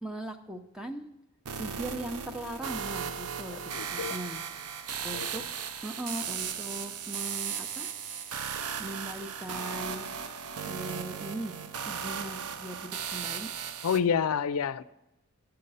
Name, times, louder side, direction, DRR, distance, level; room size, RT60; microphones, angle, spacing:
voice 1, 0.0-1.1 1.5-5.4 5.8-10.0 10.6-11.6 11.9-13.5, right 1 dB, 5° right, 5 dB, 0.6 m, -40 dB
sound 1, 1.5-14.0, right 7 dB, 90° right, 0.6 m, -36 dB
voice 2, 3.7-4.2 5.1-5.3 13.8-14.8, left 7 dB, 80° left, 14 dB, 0.4 m, -28 dB
12.5 x 5.8 x 5.5 m, 0.89 s
head